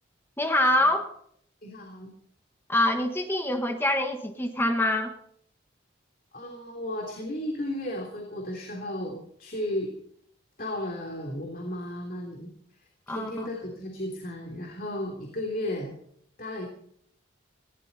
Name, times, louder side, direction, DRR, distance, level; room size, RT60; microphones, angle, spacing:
voice 1, 0.4-1.1 2.7-5.1 13.1-13.5, left 1 dB, 10° left, 5 dB, 1.4 m, -25 dB
voice 2, 1.6-2.1 6.3-9.9 10.6-12.5 13.1-15.9 16.4-16.7, left 1 dB, 45° left, 1 dB, 3.2 m, -34 dB
20.0 x 17.0 x 4.1 m, 0.66 s
head